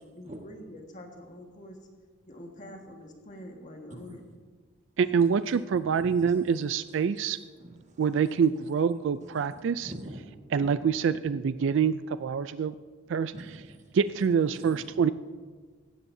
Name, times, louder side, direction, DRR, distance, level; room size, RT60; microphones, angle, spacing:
voice 1, 0.0-1.8 2.3-4.2 7.1-7.2, left 1 dB, 35° left, 2 dB, 1.6 m, -46 dB
voice 2, 5.0-7.4 8.0-9.9 10.5-12.7 13.1-13.3 13.9-15.1, right 6 dB, 60° right, 14 dB, 0.3 m, -26 dB
voice 3, 5.7-6.3 7.2-8.3 8.6-8.7 9.2-10.2 10.6-11.0 13.3-14.0 14.5-14.8, right 1 dB, 35° right, 1 dB, 1.6 m, -45 dB
16.0 x 16.0 x 2.7 m, 1.5 s
head